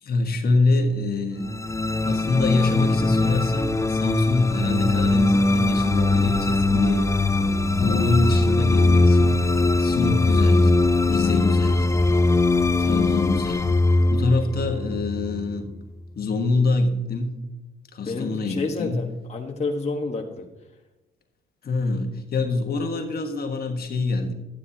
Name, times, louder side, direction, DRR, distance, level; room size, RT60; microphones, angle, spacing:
voice 1, 0.0-1.5 2.0-7.1 7.8-9.5 9.8-10.7 11.1-11.9 12.8-13.7 14.1-15.8 16.2-17.4 17.9-19.1 21.6-24.3, left 3 dB, 50° left, 4 dB, 1.4 m, -25 dB
sound 1, 1.4-15.8, left 2 dB, 15° left, 0.5 m, -21 dB
voice 2, 18.0-20.5, left 3 dB, 35° left, 1 dB, 1.3 m, -29 dB
11.5 x 10.0 x 2.8 m, 1.0 s
cardioid pair, 90°, 20 cm